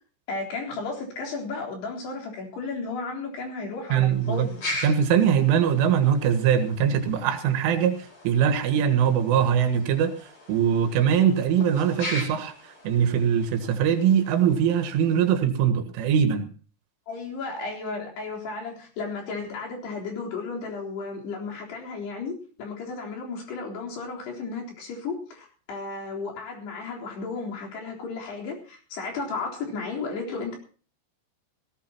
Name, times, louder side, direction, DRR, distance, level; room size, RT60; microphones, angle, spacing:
voice 1, 0.3-4.6 17.1-30.6, left 4 dB, 60° left, -1 dB, 5.7 m, -34 dB
sound 1, 3.8-15.4, left 1 dB, 25° left, 4.8 m, -40 dB
voice 2, 3.9-4.5 4.8-8.0 8.3-10.2 10.5-12.5 12.8-16.5, right 8 dB, 85° right, 8 dB, 4.2 m, -22 dB
18.0 x 18.0 x 2.9 m, 0.38 s
omnidirectional pair, 5.6 m